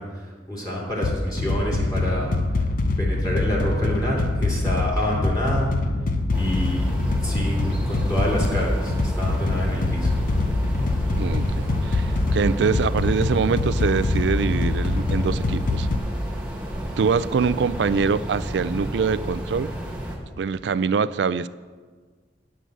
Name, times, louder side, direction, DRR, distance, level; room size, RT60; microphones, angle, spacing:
voice 1, 0.0-2.4 3.0-5.7 6.3-6.9 7.2-10.1, equal, 20° left, -5 dB, 2.5 m, -27 dB
sound 1, 1.0-16.0, left 2 dB, 50° left, 0.6 m, -24 dB
sound 2, 6.3-20.2, equal, 5° right, 1.6 m, -32 dB
voice 2, 11.2-15.9 17.0-19.7 20.4-21.5, right 5 dB, 65° right, 16 dB, 0.4 m, -24 dB
9.3 x 6.7 x 7.6 m, 1.5 s
head